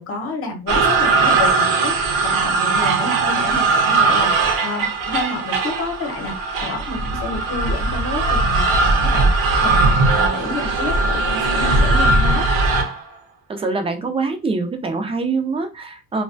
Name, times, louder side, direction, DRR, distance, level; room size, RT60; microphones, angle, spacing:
voice 1, 0.0-12.4, left 2 dB, 40° left, 2 dB, 0.9 m, -29 dB
sound 1, 0.7-13.0, right 3 dB, 80° right, 0.6 m, -19 dB
voice 2, 13.5-16.2, right 3 dB, 15° right, 5 dB, 0.4 m, -24 dB
2.3 x 2.1 x 2.5 m, 0.29 s
cardioid pair, 110°, 33 cm